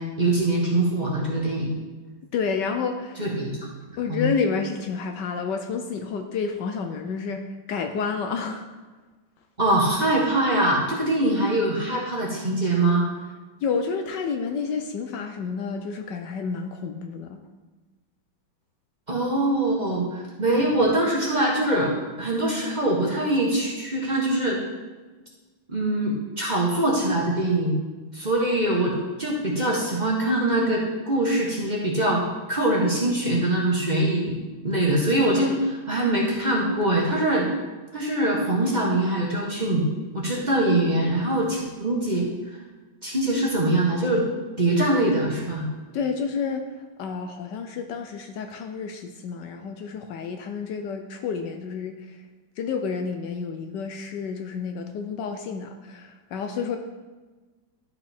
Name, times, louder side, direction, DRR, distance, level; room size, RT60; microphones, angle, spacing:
voice 1, 0.0-1.7 3.2-3.5 4.1-4.2 9.6-13.1 19.1-21.9 22.2-24.6 25.7-27.7 28.1-32.2 32.5-34.3 34.6-37.5 37.9-39.8 40.1-42.2 43.0-44.2 44.6-45.7, right 1 dB, 25° right, -4 dB, 1.3 m, -23 dB
voice 2, 2.3-3.2 4.0-8.6 13.6-17.4 45.9-52.2 52.6-56.8, left 5 dB, 70° left, 6 dB, 1.2 m, -30 dB
11.5 x 5.3 x 4.3 m, 1.3 s
omnidirectional pair, 2.1 m